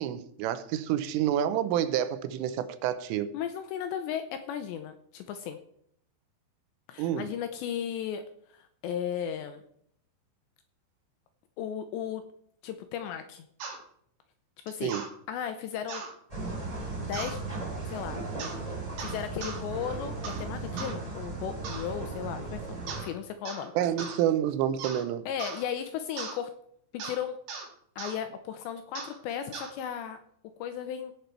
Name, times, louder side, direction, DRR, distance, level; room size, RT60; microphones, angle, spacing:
voice 1, 0.0-3.3 7.0-7.3 14.8-15.1 23.8-25.2, right 10 dB, 85° right, 3.3 m, -28 dB
voice 2, 3.3-5.6 6.9-8.2 8.5-9.6 11.6-12.2 12.6-13.5 14.7-14.9 15.3-16.0 17.0-17.4 17.9-18.2 19.0-23.7 25.3-26.5 26.9-27.4 28.0-30.2 30.6-31.1, left 9 dB, 80° left, 2.7 m, -35 dB
sound 1, 13.6-13.8 14.9-15.1 15.9-16.1 17.1-17.4 18.4-18.6 19.0-19.6 20.2-20.4 20.8-21.0 21.6-21.9 22.9-23.1 23.4-23.7 24.0-24.2 24.8-25.0 25.4-25.6 26.2-26.4 27.0-27.2 27.5-27.7 28.0-28.2 28.9-29.2 29.5-29.7, right 5 dB, 55° right, 3.6 m, -38 dB
sound 2, 16.3-23.0, right 3 dB, 10° right, 2.4 m, -36 dB
17.5 x 6.9 x 4.7 m
omnidirectional pair, 5.7 m